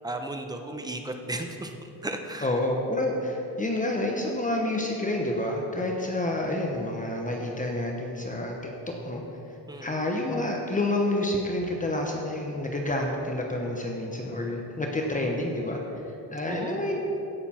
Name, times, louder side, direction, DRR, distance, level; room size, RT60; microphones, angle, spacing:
voice 1, 0.0-1.7 2.0-2.6 9.7-10.0 16.5-16.9, right 2 dB, 10° right, 5 dB, 0.8 m, -35 dB
voice 2, 2.4-8.5 9.0-9.2 9.8-16.0 16.3-17.0, left 1 dB, 20° left, 0 dB, 1.0 m, -28 dB
16.5 x 6.7 x 4.4 m, 2.9 s
cardioid pair, 125°, 39 cm